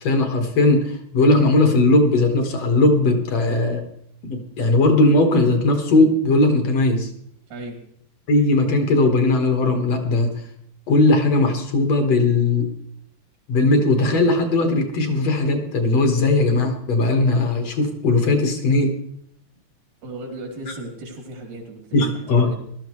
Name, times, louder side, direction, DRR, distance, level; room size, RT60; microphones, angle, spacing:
voice 1, 0.0-3.8 4.2-7.1 8.3-10.3 10.9-12.7 13.5-18.9 21.9-22.5, left 2 dB, 60° left, 4 dB, 2.6 m, -18 dB
voice 2, 7.5-7.8 20.0-22.0 22.3-22.6, right 2 dB, 90° right, 1 dB, 4.2 m, -35 dB
18.5 x 13.0 x 3.2 m, 0.70 s
omnidirectional pair, 3.3 m